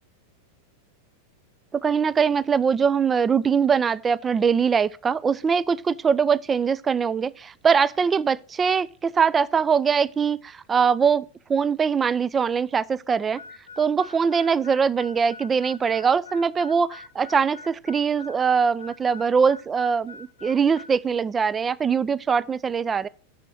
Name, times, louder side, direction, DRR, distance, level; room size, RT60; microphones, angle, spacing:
voice 1, 1.7-13.4 13.8-23.1, right 6 dB, 20° right, 0.4 m, -22 dB
Harmonica, 13.4-21.0, left 4 dB, 75° left, 0.7 m, -44 dB
6.4 x 6.1 x 6.1 m
figure-of-eight pair, 90°, 0 cm